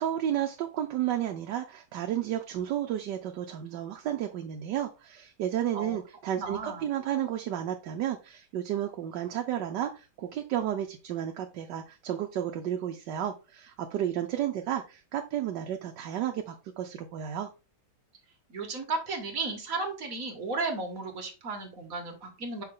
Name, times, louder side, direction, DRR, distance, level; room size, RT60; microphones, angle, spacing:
voice 1, 0.0-17.5, right 11 dB, 85° right, 4 dB, 1.4 m, -32 dB
voice 2, 6.4-6.9 18.5-22.6, right 3 dB, 55° right, 4 dB, 1.9 m, -34 dB
6.0 x 4.8 x 3.7 m, 0.30 s
omnidirectional pair, 1.8 m